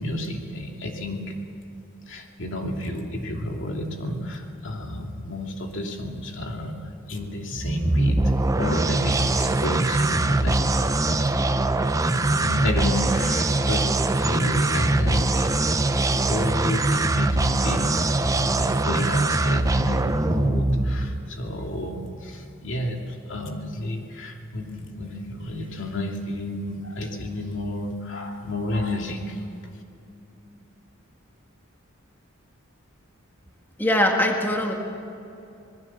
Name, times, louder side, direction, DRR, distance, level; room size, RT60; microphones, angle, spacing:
voice 1, 0.0-1.4 2.1-6.8 7.1-10.6 11.1-11.7 12.1-15.5 16.2-29.4, left 1 dB, 60° left, 2 dB, 2.7 m, -31 dB
sound 1, 7.5-21.3, right 2 dB, 15° right, 0.7 m, -22 dB
voice 2, 33.8-34.7, left 1 dB, 10° left, 1 dB, 1.7 m, -21 dB
26.0 x 19.5 x 7.3 m, 2.8 s
head